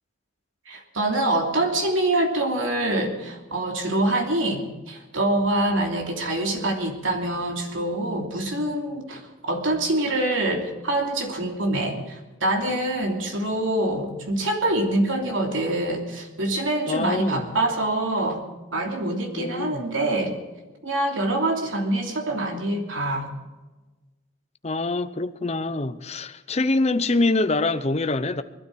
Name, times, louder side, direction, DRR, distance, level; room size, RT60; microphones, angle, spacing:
voice 1, 0.7-9.2 9.5-18.4 18.7-20.3 20.8-23.3, right 1 dB, 85° right, 3.0 m, -25 dB
voice 2, 16.9-17.4 19.4-19.8 24.6-28.4, left 2 dB, 35° left, 0.8 m, -25 dB
21.0 x 12.5 x 4.7 m
head